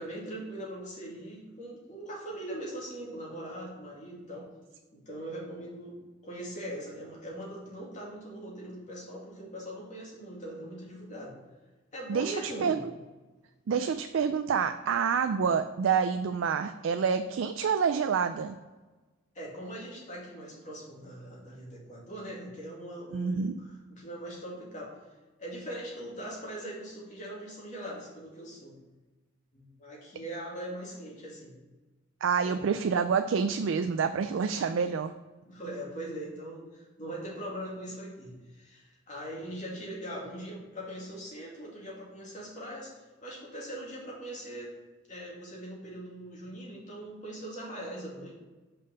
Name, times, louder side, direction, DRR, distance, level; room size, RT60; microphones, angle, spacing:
voice 1, 0.0-4.5 4.9-11.4 11.9-12.8 19.3-25.0 25.4-28.8 29.5-31.6 32.4-32.7 35.5-44.7 45.1-48.3, right 1 dB, 35° left, -4 dB, 2.4 m, -41 dB
voice 2, 12.1-12.8 13.7-18.6 23.1-23.6 32.2-35.1, right 6 dB, 70° right, 8 dB, 0.4 m, -28 dB
5.8 x 5.3 x 5.3 m, 1.2 s
head